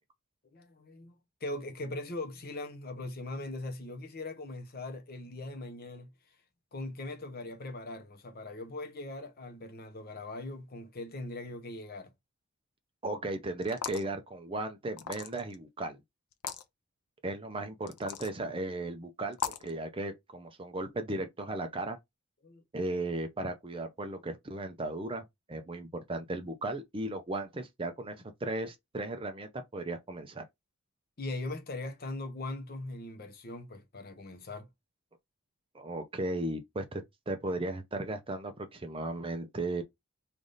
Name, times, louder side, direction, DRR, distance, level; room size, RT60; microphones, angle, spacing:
voice 1, 0.5-6.4 6.7-12.1 22.4-22.6 31.2-34.7, left 2 dB, 40° left, 0.7 m, -40 dB
voice 2, 13.0-16.0 17.2-22.0 22.7-30.4 35.7-39.8, right 2 dB, 25° right, 0.5 m, -36 dB
sound 1, 13.6-14.1 15.0-15.6 16.3-16.6 17.9-18.3 19.3-19.7, left 8 dB, 85° left, 0.5 m, -37 dB
3.4 x 2.5 x 3.9 m
head